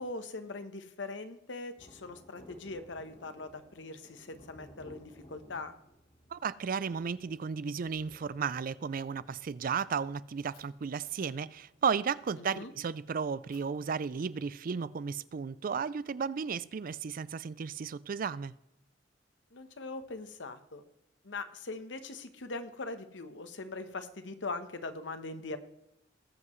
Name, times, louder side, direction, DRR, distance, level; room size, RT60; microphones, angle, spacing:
voice 1, 0.0-5.7 12.4-12.7 19.5-20.8 21.2-25.6, left 3 dB, 85° left, 1.0 m, -41 dB
Thunder, 1.8-13.8 14.0-14.1, left 1 dB, 30° left, 1.3 m, -58 dB
voice 2, 6.3-18.5, right 6 dB, 50° right, 0.4 m, -34 dB
Fire, 10.5-10.6 12.4-12.5 13.5-15.4, left 5 dB, 60° left, 4.5 m, -67 dB
19.5 x 7.7 x 3.1 m
head